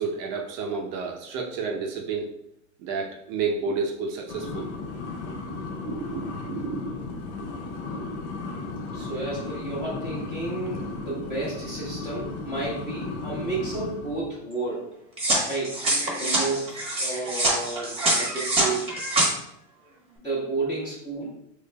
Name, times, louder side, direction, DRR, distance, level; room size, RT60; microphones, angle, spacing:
voice 1, 0.0-2.3 2.8-4.7 5.8-6.9, right 5 dB, 50° right, 1 dB, 0.7 m, -30 dB
sound 1, 4.3-14.3, left 3 dB, 60° left, 0.7 m, -35 dB
voice 2, 8.9-14.9 15.5-15.8 16.2-18.9 20.2-21.4, right 3 dB, 10° left, -10 dB, 1.1 m, -31 dB
sound 2, 15.2-19.3, right 1 dB, 15° right, 1.1 m, -25 dB
3.9 x 3.2 x 2.2 m, 0.75 s
hypercardioid pair, 115°, 39 cm